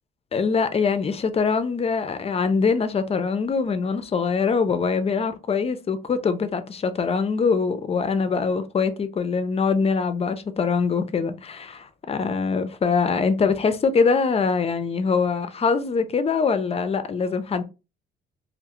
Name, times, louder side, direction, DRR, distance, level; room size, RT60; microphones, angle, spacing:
voice 1, 0.3-17.6, left 5 dB, 30° left, 0.4 m, -23 dB
2.3 x 2.0 x 2.8 m
cardioid pair, 90°, 20 cm